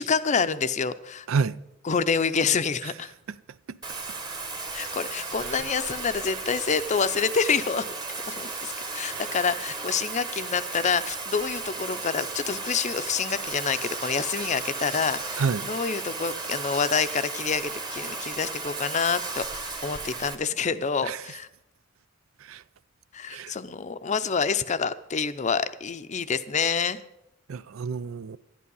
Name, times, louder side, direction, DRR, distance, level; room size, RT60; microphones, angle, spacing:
voice 1, 0.0-1.3 1.9-3.1 4.7-7.8 8.3-21.5 23.1-27.0, left 5 dB, 35° left, 0.5 m, -27 dB
voice 2, 1.3-1.6 3.3-3.4 3.7-3.8 5.4-5.7 9.1-9.3 15.4-15.7 21.0-21.2 22.4-22.6 23.3-23.5 27.5-28.4, right 5 dB, 80° right, 0.4 m, -30 dB
Bathtub (filling or washing), 3.8-20.3, right 3 dB, 20° right, 1.2 m, -35 dB
11.5 x 11.0 x 5.4 m
head